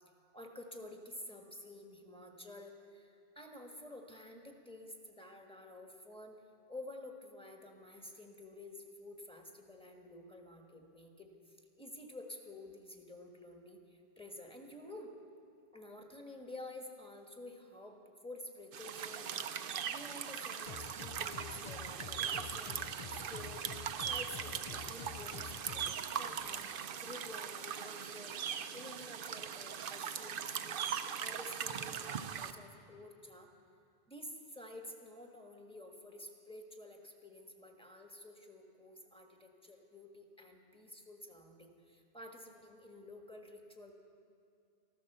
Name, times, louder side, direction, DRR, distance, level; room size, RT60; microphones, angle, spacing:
voice 1, 0.3-6.4 6.7-15.1 15.7-28.4 28.7-30.8 31.2-33.5 34.1-43.9, left 1 dB, 5° left, 1 dB, 1.4 m, -51 dB
sound 1, 18.7-32.5, right 8 dB, 60° right, 0.7 m, -40 dB
sound 2, 20.7-25.9, left 9 dB, 50° left, 0.4 m, -48 dB
14.5 x 13.5 x 6.7 m, 2.6 s
omnidirectional pair, 1.1 m